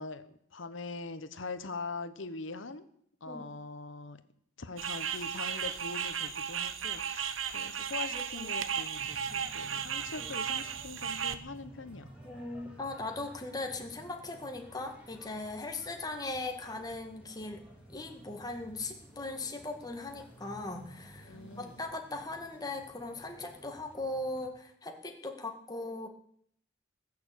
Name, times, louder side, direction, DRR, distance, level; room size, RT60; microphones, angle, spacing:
voice 1, 0.0-2.9 3.2-4.2 4.6-12.1 21.2-21.8, left 3 dB, 70° left, 12 dB, 1.2 m, -42 dB
sound 1, 4.8-11.4, right 8 dB, 75° right, 1.0 m, -35 dB
voice 2, 8.1-8.5 10.2-10.3 12.2-17.6 17.9-26.1, left 2 dB, 20° left, 4 dB, 1.9 m, -39 dB
sound 2, 9.0-24.5, right 1 dB, 5° right, 3.2 m, -53 dB
20.0 x 6.9 x 8.4 m, 0.67 s
head